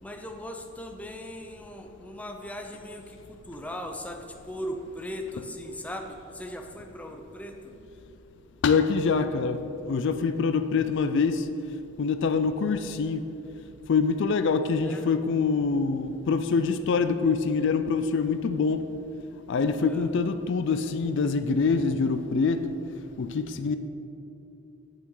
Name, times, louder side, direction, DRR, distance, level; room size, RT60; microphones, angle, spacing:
voice 1, 0.0-7.7 14.8-15.1 19.8-20.1, equal, 5° left, 3 dB, 0.5 m, -39 dB
voice 2, 8.6-11.5 12.0-13.2 13.9-18.9 19.5-22.7 23.2-23.8, left 5 dB, 60° left, 10 dB, 0.4 m, -25 dB
8.8 x 7.9 x 3.8 m, 2.9 s
head